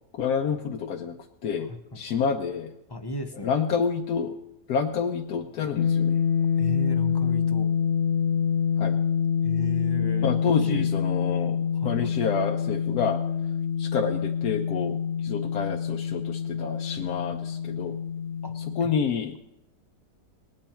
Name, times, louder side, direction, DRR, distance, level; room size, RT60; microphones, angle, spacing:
voice 1, 0.1-1.2 1.4-1.7 2.0-2.7 3.4-4.4 4.7-6.2 8.8-9.0 10.2-11.6 11.8-13.2 13.8-15.0 15.2-18.0 18.8-19.4, left 6 dB, 85° left, 2 dB, 1.3 m, -28 dB
voice 2, 1.7-2.2 2.9-3.5 6.6-7.7 9.4-10.9 11.7-12.1 18.4-18.5 18.8-18.9, left 1 dB, 25° left, 6 dB, 0.5 m, -36 dB
sound 1, 5.8-18.8, left 7 dB, 60° left, 0.9 m, -26 dB
19.5 x 9.3 x 4.4 m, 0.85 s
omnidirectional pair, 1.6 m